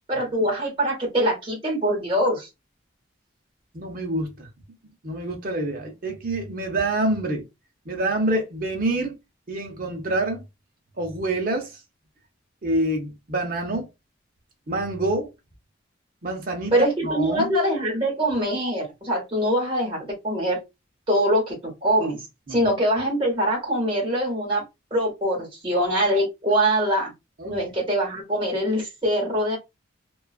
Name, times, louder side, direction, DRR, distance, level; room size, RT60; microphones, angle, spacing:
voice 1, 0.1-2.5 16.7-20.6 21.1-22.2 22.5-24.6 24.9-27.1 27.4-29.6, equal, 25° right, 1.1 m, -23 dB
voice 2, 3.7-4.5 5.0-7.4 7.9-9.1 9.5-10.4 11.0-11.7 12.6-13.9 14.7-15.3 16.2-16.7 17.0-17.5 22.5-22.7 27.4-27.5, right 2 dB, 45° right, 0.7 m, -26 dB
2.3 x 2.2 x 2.3 m
head